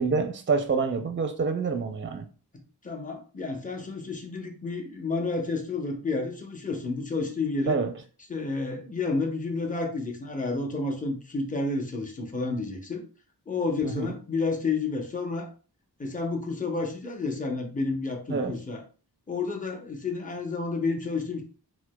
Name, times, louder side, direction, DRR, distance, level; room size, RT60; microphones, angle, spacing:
voice 1, 0.0-2.3 7.7-7.9 13.8-14.1 18.3-18.6, right 4 dB, 30° right, 0.5 m, -27 dB
voice 2, 2.5-7.8 8.3-13.0 13.5-15.5 16.0-18.8 19.3-21.4, left 3 dB, 20° left, 0.7 m, -30 dB
4.5 x 2.1 x 2.2 m
wide cardioid pair, 50°, 39 cm